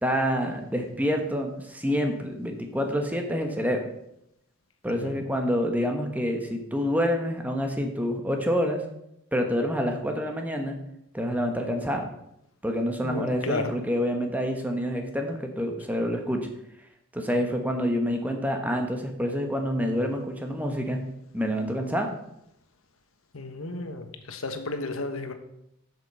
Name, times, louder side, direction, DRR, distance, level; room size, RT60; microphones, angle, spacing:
voice 1, 0.0-3.8 4.8-8.8 9.3-10.8 11.1-12.0 12.6-16.5 17.1-21.0 21.3-22.1, equal, 5° right, 3 dB, 1.2 m, -27 dB
voice 2, 13.0-13.6 23.3-25.3, left 3 dB, 75° left, 7 dB, 1.2 m, -32 dB
8.2 x 6.9 x 6.8 m, 0.80 s
head